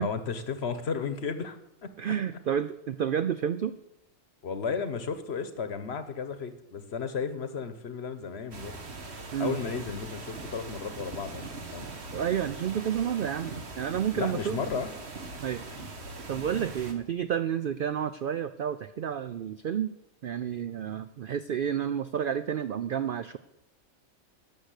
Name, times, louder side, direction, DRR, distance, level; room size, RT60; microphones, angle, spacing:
voice 1, 0.0-1.9 4.4-8.8 9.4-11.9 14.2-14.9 15.8-15.9, left 5 dB, 50° left, 11 dB, 1.1 m, -34 dB
voice 2, 2.0-3.7 9.3-9.6 12.1-14.6 15.4-15.9 16.3-19.9 20.2-23.4, right 9 dB, 75° right, 12 dB, 0.4 m, -30 dB
sound 1, 8.5-16.9, right 3 dB, 50° right, 1.5 m, -41 dB
12.5 x 6.7 x 8.1 m, 0.89 s
omnidirectional pair, 1.5 m